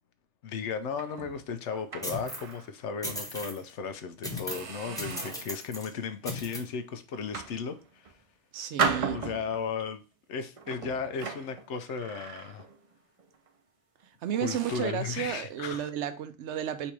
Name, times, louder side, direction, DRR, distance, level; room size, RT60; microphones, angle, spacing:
voice 1, 0.4-8.2 9.1-10.0 10.3-12.7 14.4-15.9, left 6 dB, 85° left, 1.0 m, -35 dB
sound 1, 0.9-2.7 3.1-3.3 3.9-4.0 4.5-5.5 6.1-6.4 7.1-8.2 8.8-9.8 10.6-12.9 13.2-13.5 14.0-14.1 14.5-15.0, right 5 dB, 45° right, 0.5 m, -36 dB
sound 2, 2.0-2.5 3.0-3.6 4.2-4.7 5.0-5.9 6.2-6.6, left 1 dB, 5° left, 0.9 m, -37 dB
voice 2, 8.5-9.2 14.2-16.9, right 9 dB, 75° right, 0.9 m, -32 dB
4.1 x 2.8 x 4.5 m
omnidirectional pair, 1.2 m